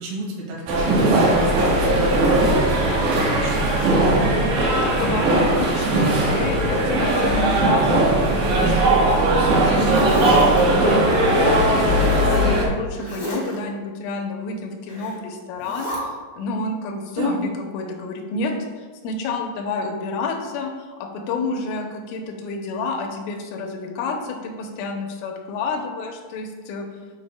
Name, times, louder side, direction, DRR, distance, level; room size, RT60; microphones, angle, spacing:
voice 1, 0.0-3.9 17.1-17.4, right 2 dB, 85° right, -4 dB, 4.2 m, -32 dB
sound 1, 0.7-12.7, right 1 dB, 70° right, 3.3 m, -18 dB
voice 2, 4.4-16.1 16.4-17.4 17.7-26.9, left 3 dB, 85° left, 3 dB, 3.3 m, -29 dB
Zipper (clothing), 8.1-9.1 9.5-10.6 11.9-12.3 12.9-13.6 14.9-15.2 15.6-16.0, equal, 50° left, 1.4 m, -33 dB
11.5 x 4.8 x 2.2 m, 1.4 s
omnidirectional pair, 5.6 m